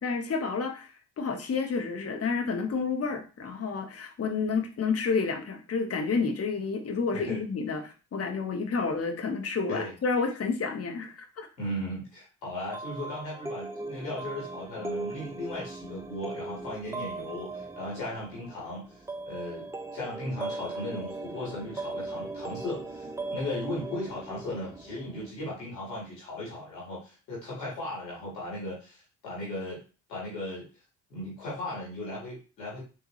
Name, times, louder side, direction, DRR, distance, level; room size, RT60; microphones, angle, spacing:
voice 1, 0.0-11.5, left 4 dB, 30° left, 5 dB, 0.9 m, -30 dB
voice 2, 11.6-18.8 19.3-19.7 19.9-23.1 23.3-29.8 30.1-30.6 31.1-32.8, left 1 dB, 90° left, -5 dB, 1.7 m, -36 dB
sound 1, 12.7-25.3, right 2 dB, 5° right, 0.3 m, -39 dB
3.5 x 2.9 x 3.1 m, 0.33 s
hypercardioid pair, 45°, 48 cm